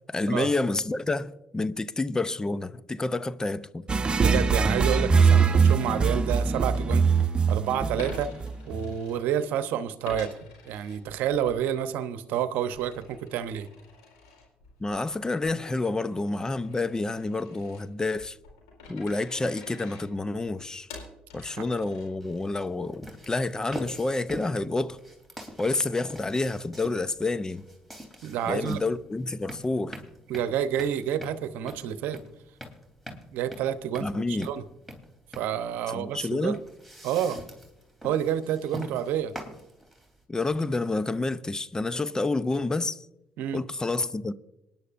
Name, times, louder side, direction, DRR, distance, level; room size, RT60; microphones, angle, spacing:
voice 1, 0.1-3.9 14.8-18.4 18.9-20.9 21.3-25.0 25.6-27.6 28.5-30.0 34.0-34.5 35.9-36.6 40.3-43.1 43.5-44.3, left 2 dB, 20° left, 0.7 m, -29 dB
sound 1, 3.9-8.9, right 5 dB, 30° right, 0.9 m, -22 dB
voice 2, 4.2-7.1 7.5-8.3 8.7-13.7 21.6-21.7 28.2-28.8 30.3-32.2 33.1-34.6 35.3-36.6 37.0-37.4 38.0-39.3 43.4-43.6, right 9 dB, 75° right, 0.8 m, -29 dB
Coin (dropping), 8.0-9.6 10.0-11.6 12.0-22.5, left 3 dB, 90° left, 4.3 m, -48 dB
sound 2, 22.2-40.2, equal, 5° left, 3.4 m, -44 dB
26.5 x 10.5 x 2.6 m
hypercardioid pair, 60°, 3 cm